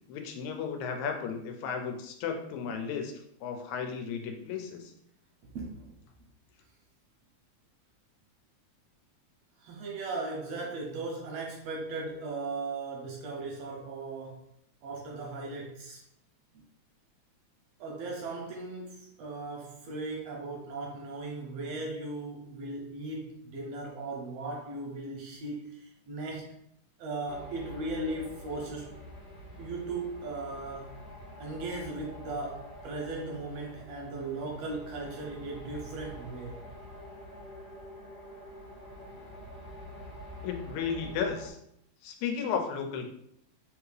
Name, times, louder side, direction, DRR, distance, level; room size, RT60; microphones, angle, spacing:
voice 1, 0.1-3.1 3.4-4.9 40.4-41.6 42.0-43.1, left 6 dB, 85° left, 5 dB, 2.0 m, -34 dB
voice 2, 5.4-6.0 9.6-14.4 14.8-16.0 17.8-26.6 27.0-29.0 29.6-31.0 31.4-36.6, right 2 dB, 75° right, -1 dB, 1.6 m, -37 dB
sound 1, 27.2-41.5, equal, 25° right, 0.9 m, -46 dB
4.1 x 3.4 x 3.2 m, 0.71 s
omnidirectional pair, 3.4 m